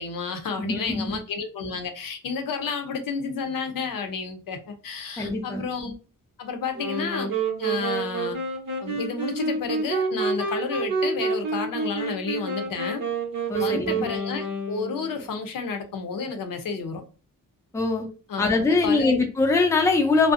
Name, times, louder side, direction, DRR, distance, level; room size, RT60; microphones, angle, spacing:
voice 1, 0.0-6.0 6.4-7.3 7.6-8.4 8.8-13.0 13.6-17.0 18.3-19.2, left 5 dB, 85° left, 0.6 m, -31 dB
voice 2, 0.6-1.2 5.2-5.6 13.5-14.1 17.7-18.1 18.4-20.3, left 3 dB, 10° left, 0.4 m, -22 dB
sound 1, 6.7-15.2, right 3 dB, 75° right, 0.7 m, -28 dB
2.5 x 2.0 x 2.4 m
wide cardioid pair, 130°, 33 cm